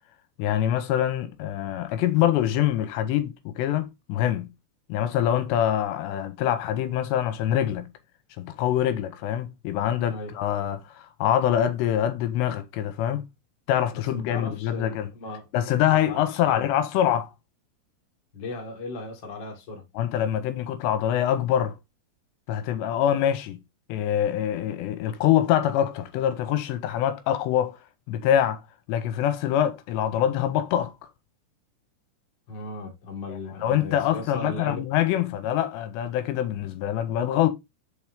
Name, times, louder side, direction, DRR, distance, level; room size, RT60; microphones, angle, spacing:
voice 1, 0.4-4.5 4.9-7.9 8.4-10.8 11.2-13.2 13.7-15.1 15.5-17.3 20.0-21.7 22.5-23.6 23.9-27.8 28.1-28.6 28.9-30.9 33.6-37.5, left 11 dB, 90° left, 2.9 m, -24 dB
voice 2, 13.9-15.5 15.9-16.6 18.3-19.8 32.5-34.8, left 2 dB, 60° left, 1.1 m, -37 dB
6.3 x 4.5 x 3.6 m
omnidirectional pair, 5.0 m